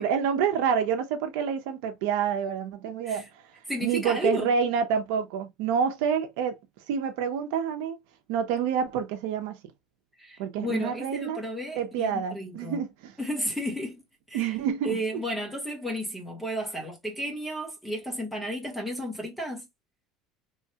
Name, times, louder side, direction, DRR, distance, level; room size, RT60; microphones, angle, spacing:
voice 1, 0.0-3.3 3.8-6.6 6.9-8.0 8.3-9.6 10.4-11.4 11.8-13.1 14.3-15.2, right 7 dB, 80° right, 0.6 m, -28 dB
voice 2, 3.7-4.5 10.2-12.8 13.2-14.0 14.3-14.5 14.8-19.7, equal, ahead, 0.9 m, -33 dB
3.1 x 2.2 x 2.8 m
cardioid pair, 170°, 0 cm